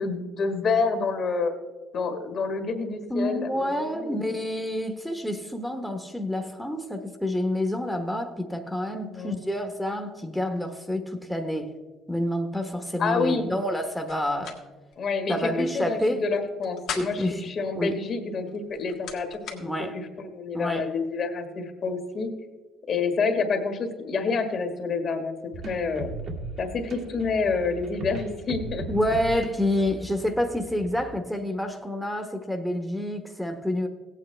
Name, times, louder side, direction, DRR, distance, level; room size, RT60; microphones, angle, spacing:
voice 1, 0.0-1.5 1.9-4.1 9.0-9.4 13.0-13.5 15.0-19.6 20.2-22.3 22.9-25.4 25.6-26.1 26.6-28.9, left 4 dB, 55° left, 6 dB, 1.5 m, -28 dB
voice 2, 3.1-11.7 12.1-14.6 15.3-16.2 16.9-17.4 17.8-17.9 19.6-20.0 20.5-20.9 28.9-33.9, left 1 dB, ahead, 4 dB, 1.1 m, -28 dB
sound 1, 14.1-14.6 14.9-15.0 16.5-17.3 18.5-19.6, left 7 dB, 70° left, 1.6 m, -37 dB
sound 2, 25.5-31.2, right 2 dB, 60° right, 1.8 m, -38 dB
17.0 x 8.5 x 3.3 m, 1.3 s
supercardioid pair, 70°, 0 cm